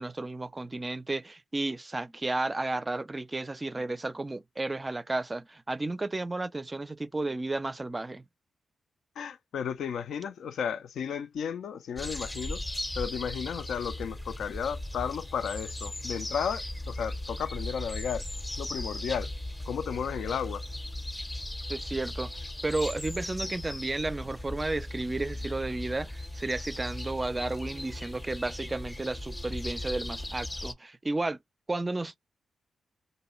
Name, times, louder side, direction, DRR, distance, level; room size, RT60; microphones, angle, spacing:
voice 1, 0.0-8.2 21.7-31.4 31.7-32.2, right 2 dB, 30° right, 0.4 m, -33 dB
voice 2, 9.2-12.6 13.0-18.2 18.6-19.3 19.7-20.6, left 7 dB, 80° left, 0.4 m, -33 dB
sound 1, 12.0-30.7, left 1 dB, 20° left, 0.6 m, -37 dB
2.6 x 2.2 x 3.0 m
supercardioid pair, 45°, 0 cm